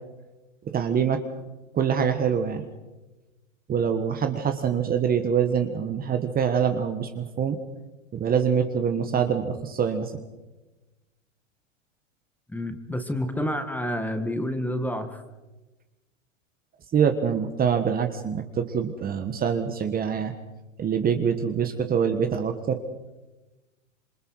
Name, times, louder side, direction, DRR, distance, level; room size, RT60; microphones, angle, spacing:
voice 1, 0.7-1.2 1.7-2.6 3.7-7.6 8.1-10.1 16.9-20.3 20.8-22.8, right 7 dB, 25° right, 7 dB, 1.5 m, -25 dB
voice 2, 12.5-15.2, left 1 dB, 5° left, 7 dB, 1.8 m, -29 dB
27.0 x 24.0 x 4.8 m, 1.1 s
hypercardioid pair, 115°, 38 cm